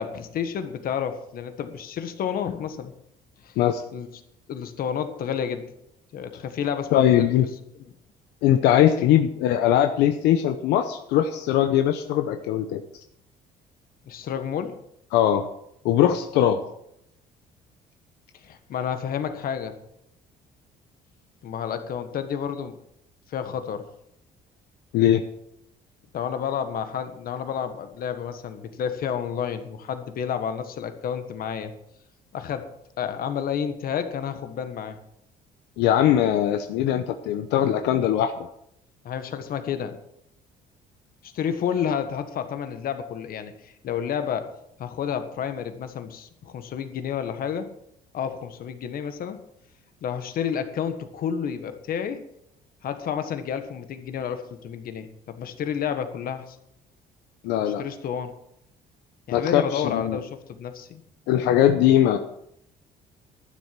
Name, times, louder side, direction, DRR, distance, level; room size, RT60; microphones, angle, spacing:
voice 1, 0.0-2.9 3.4-3.5 3.9-4.1 4.5-5.7 6.1-7.3 14.1-14.8 18.4-19.8 21.4-22.7 23.3-23.9 26.1-31.7 32.3-32.7 33.0-35.0 39.0-40.0 41.2-44.5 44.8-47.7 48.1-49.4 50.0-52.2 52.8-56.6 57.8-58.3 59.3-61.0, left 8 dB, 60° left, 9 dB, 1.6 m, -30 dB
voice 2, 6.9-7.5 8.4-12.8 15.1-15.5 15.8-16.6 24.9-25.2 35.8-38.3 57.4-57.8 59.3-60.2 61.3-62.2, left 11 dB, 90° left, 8 dB, 0.8 m, -20 dB
11.5 x 9.9 x 6.1 m, 0.77 s
cardioid pair, 110°, 17 cm